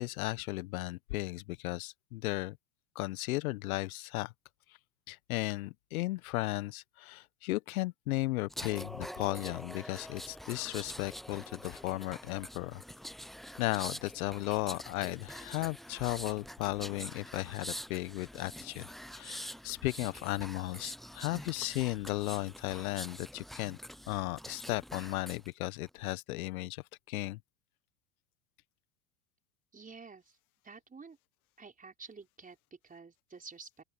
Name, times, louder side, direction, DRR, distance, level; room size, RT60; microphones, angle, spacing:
voice 1, 0.0-2.6 2.9-4.3 5.1-12.8 13.6-18.9 19.1-23.8 24.1-27.4, left 19 dB, 65° left, 1.5 m, -35 dB
sound 1, 8.5-25.5 25.9-26.1, equal, ahead, 0.6 m, -46 dB
voice 2, 29.7-30.4 30.6-31.2 31.6-33.8, right 4 dB, 15° right, 5.2 m, -50 dB
open air
hypercardioid pair, 85°, 47 cm